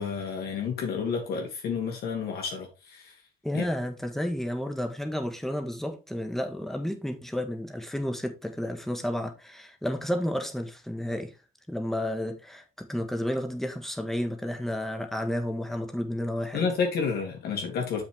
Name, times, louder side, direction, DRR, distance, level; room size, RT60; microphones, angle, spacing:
voice 1, 0.0-3.1 3.5-3.6 16.5-18.0, left 5 dB, 65° left, 2.6 m, -30 dB
voice 2, 3.4-11.3 11.7-16.7, left 1 dB, ahead, 1.8 m, -31 dB
7.4 x 6.2 x 3.6 m
cardioid pair, 110°, 17 cm